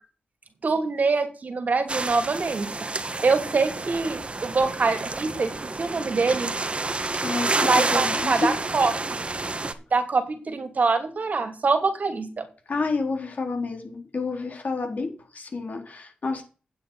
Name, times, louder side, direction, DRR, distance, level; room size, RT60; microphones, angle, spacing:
voice 1, 0.6-2.8 3.2-5.5 5.8-6.5 7.7-9.2 9.9-12.4, right 4 dB, 65° right, 6 dB, 2.7 m, -24 dB
sound 1, 1.9-9.7, right 3 dB, 40° right, 1.5 m, -29 dB
voice 2, 7.2-8.5 12.7-16.4, left 3 dB, 65° left, 3 dB, 3.9 m, -29 dB
9.1 x 7.9 x 5.7 m, 0.36 s
cardioid pair, 55°, 3 cm